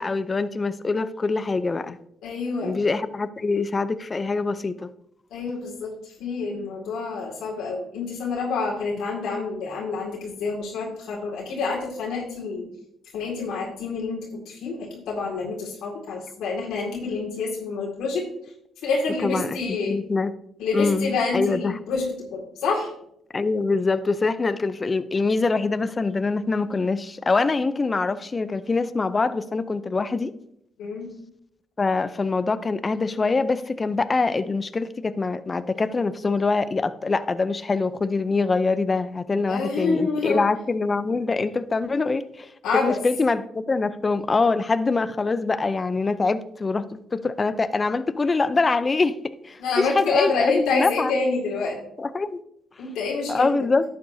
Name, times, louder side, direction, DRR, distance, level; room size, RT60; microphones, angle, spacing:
voice 1, 0.0-2.0 2.6-4.9 19.2-19.6 19.9-20.3 20.7-21.7 23.3-30.3 31.8-42.5 42.8-46.8 47.1-49.1 49.4-51.1 52.0-52.4 53.3-53.8, left 3 dB, 30° left, 14 dB, 0.5 m, -24 dB
voice 2, 2.2-2.8 5.3-12.7 13.1-18.2 18.8-20.0 20.6-22.9 30.8-31.1 39.5-40.4 42.6-43.0 49.6-51.8 52.8-53.5, left 4 dB, 85° left, -3 dB, 2.1 m, -27 dB
11.0 x 7.8 x 2.7 m, 0.74 s
cardioid pair, 90°, 0 cm